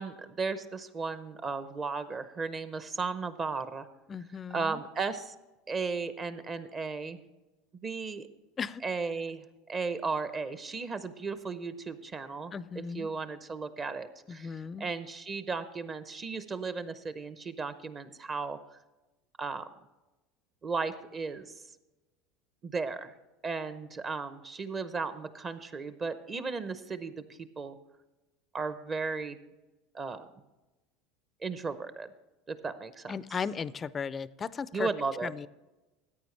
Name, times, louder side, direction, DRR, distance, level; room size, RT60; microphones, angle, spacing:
voice 1, 0.0-3.9 4.5-5.3 5.7-7.2 7.8-8.3 8.8-18.8 19.4-19.7 20.6-21.5 22.6-23.1 23.4-27.8 28.5-29.4 29.9-30.3 31.4-32.1 32.5-33.1 34.7-35.3, right 4 dB, 30° right, 12 dB, 0.8 m, -35 dB
voice 2, 4.1-4.8 8.6-8.8 12.5-13.1 14.3-14.9 33.1-34.9 35.2-35.5, left 6 dB, 25° left, 17 dB, 0.4 m, -36 dB
14.5 x 9.0 x 3.3 m, 1.1 s
supercardioid pair, 120°, 0 cm